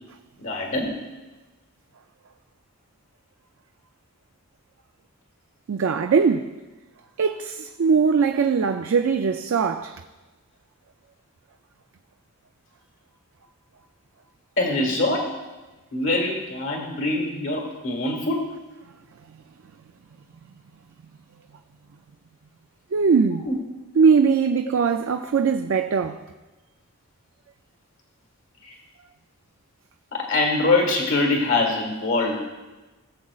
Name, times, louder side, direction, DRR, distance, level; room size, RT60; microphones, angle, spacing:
voice 1, 0.4-1.0 14.6-15.4 15.9-18.5 23.4-23.5 28.6-28.8 30.1-32.4, left 2 dB, 60° left, 1.6 m, -24 dB
voice 2, 5.7-6.5 7.2-10.0 22.9-23.5 24.0-26.2, right 5 dB, 65° right, 0.4 m, -21 dB
20.5 x 7.3 x 2.4 m
head